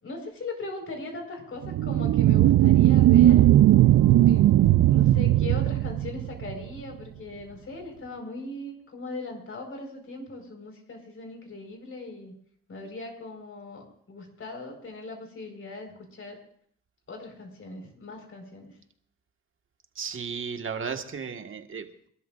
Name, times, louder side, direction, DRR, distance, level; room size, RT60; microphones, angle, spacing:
voice 1, 0.0-3.4 4.2-4.5 4.9-12.3 12.7-16.4 17.1-18.8, left 3 dB, 45° left, 3 dB, 4.8 m, -39 dB
sound 1, 1.7-6.6, right 13 dB, 65° right, 0.5 m, -18 dB
sound 2, 3.3-8.1 8.5-8.6, left 3 dB, 5° left, 2.6 m, -49 dB
voice 2, 20.0-22.1, right 6 dB, 40° right, 5 dB, 1.7 m, -35 dB
27.5 x 12.5 x 2.6 m, 0.63 s
cardioid pair, 90°, 30 cm